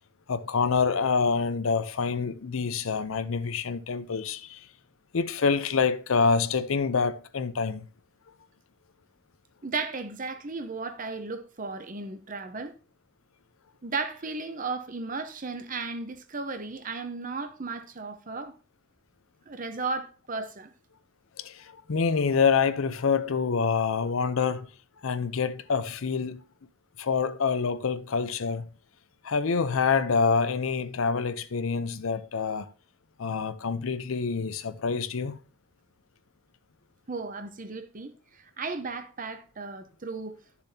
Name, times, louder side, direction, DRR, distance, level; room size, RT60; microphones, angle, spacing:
voice 1, 0.3-4.7 5.1-7.9 21.4-24.7 25.0-26.4 27.0-28.7 29.2-32.7 33.2-35.4, left 5 dB, 75° left, 0.6 m, -26 dB
voice 2, 9.6-12.7 13.8-18.6 19.5-20.7 37.1-40.4, right 4 dB, 40° right, 0.9 m, -35 dB
11.5 x 6.9 x 2.8 m
head